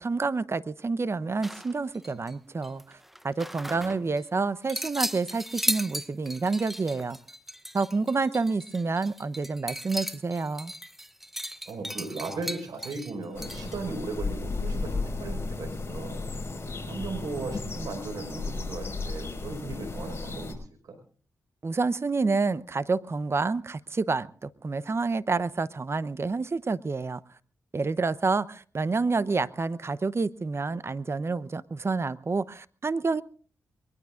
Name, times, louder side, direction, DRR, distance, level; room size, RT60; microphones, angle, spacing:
voice 1, 0.0-3.0 3.2-7.2 7.7-10.7 21.6-27.2 27.7-33.2, right 4 dB, 40° right, 0.8 m, -28 dB
sound 1, 1.4-2.3 2.6-4.2 4.7-13.7, equal, 5° right, 0.8 m, -36 dB
voice 2, 11.7-16.2 16.9-20.6 20.8-21.0, right 3 dB, 75° right, 5.0 m, -37 dB
sound 2, 13.3-20.5, left 3 dB, 40° left, 5.3 m, -34 dB
22.5 x 20.5 x 2.5 m
supercardioid pair, 45°, 7 cm